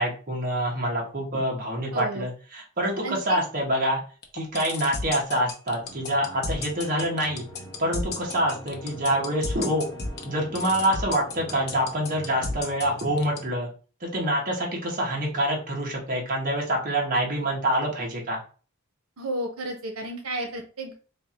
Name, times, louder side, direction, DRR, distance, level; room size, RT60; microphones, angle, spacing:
voice 1, 0.0-4.0 4.3-7.4 7.8-9.9 10.2-13.7 14.0-18.4, right 1 dB, 40° right, -2 dB, 1.2 m, -26 dB
voice 2, 1.9-2.3 3.0-3.4 19.2-20.9, right 1 dB, 90° right, 3 dB, 0.9 m, -32 dB
sound 1, 4.2-13.4, left 3 dB, 50° left, 0.7 m, -32 dB
sound 2, 5.8-13.5, right 1 dB, 15° left, 1.1 m, -44 dB
3.4 x 2.4 x 4.2 m, 0.37 s
head